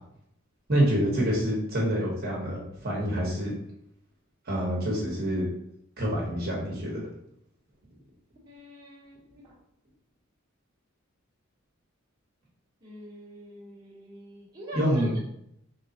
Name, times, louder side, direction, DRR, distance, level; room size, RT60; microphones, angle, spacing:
voice 1, 0.7-3.5 4.5-5.5 6.0-7.0 14.7-15.2, equal, 50° right, -4 dB, 1.1 m, -26 dB
voice 2, 8.4-9.5 12.8-15.2, equal, 20° right, -8 dB, 1.2 m, -44 dB
3.8 x 3.2 x 2.8 m, 0.75 s
head